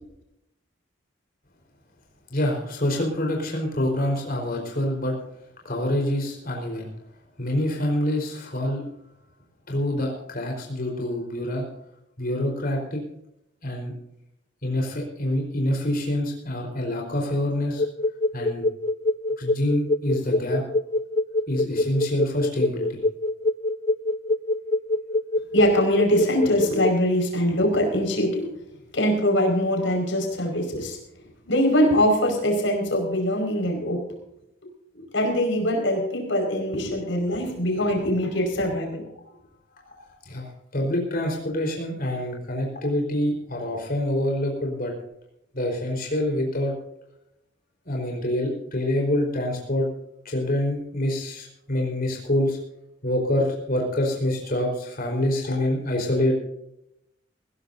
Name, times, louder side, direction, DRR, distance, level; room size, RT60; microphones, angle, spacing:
voice 1, 2.3-5.1 5.6-6.9 7.4-8.8 9.7-11.7 12.2-13.0 13.6-13.9 14.6-17.8 18.3-18.7 19.4-20.6 21.5-23.0 39.8-44.9 45.5-46.7 47.8-49.9 50.2-52.6 53.0-56.4, left 1 dB, 50° left, 0 dB, 4.3 m, -26 dB
sound 1, 17.8-26.9, left 2 dB, 35° left, 0.4 m, -24 dB
voice 2, 25.5-28.5 28.9-31.0 31.4-34.1 34.9-39.0, equal, 85° left, 2 dB, 5.1 m, -23 dB
21.0 x 16.5 x 2.7 m, 0.79 s
head